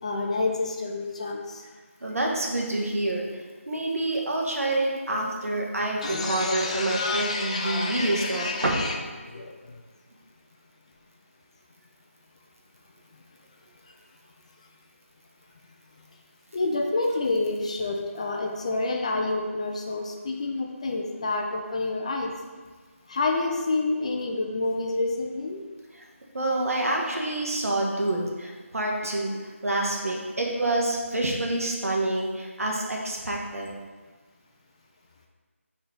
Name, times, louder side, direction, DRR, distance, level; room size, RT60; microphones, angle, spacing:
voice 1, 0.0-1.7 5.2-5.6 6.0-9.0 9.2-9.8 16.5-22.3 23.1-25.6, left 3 dB, 25° left, 2 dB, 0.5 m, -28 dB
voice 2, 2.0-3.2 3.7-8.7 26.3-29.3 29.6-33.7, right 2 dB, 75° right, -1 dB, 1.5 m, -27 dB
4.6 x 4.1 x 5.3 m, 1.4 s
figure-of-eight pair, 165°, 8 cm